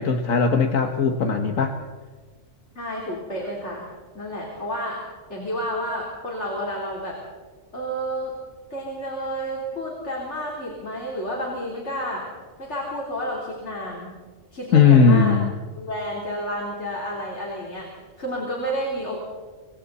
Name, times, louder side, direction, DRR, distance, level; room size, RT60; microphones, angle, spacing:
voice 1, 0.0-1.7 14.7-15.5, left 5 dB, 90° left, 5 dB, 1.7 m, -18 dB
voice 2, 2.7-5.0 5.3-7.2 7.7-8.4 8.7-12.3 12.6-14.2 14.5-15.4 15.8-17.9 18.2-19.2, equal, 60° left, -2 dB, 4.2 m, -30 dB
27.0 x 23.5 x 4.2 m, 1.4 s
omnidirectional pair, 1.4 m